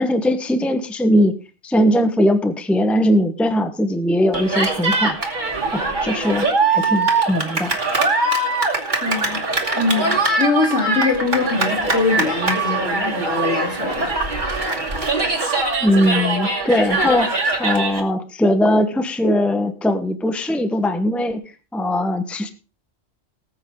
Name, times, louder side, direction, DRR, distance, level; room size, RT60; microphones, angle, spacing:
voice 1, 0.0-1.3 1.6-5.4 5.7-7.8 15.8-21.4 21.7-22.5, equal, ahead, 9 dB, 1.0 m, -20 dB
Cheering, 4.3-18.0, right 3 dB, 40° right, 2.8 m, -22 dB
voice 2, 8.9-9.4 9.7-14.1, left 4 dB, 65° left, 1 dB, 3.8 m, -22 dB
19.5 x 8.6 x 3.7 m, 0.34 s
omnidirectional pair, 1.2 m